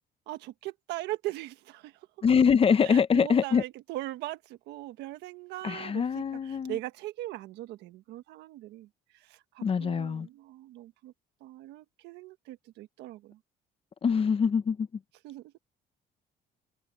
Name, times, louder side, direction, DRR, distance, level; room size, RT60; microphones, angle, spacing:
voice 1, 0.3-2.2 2.8-11.1 11.4-13.4 15.2-15.5, right 16 dB, 85° right, 1.4 m, -40 dB
voice 2, 2.2-3.6 5.6-6.7 9.6-10.3 14.0-14.9, left 6 dB, 35° left, 0.9 m, -24 dB
cardioid pair, 110°, 17 cm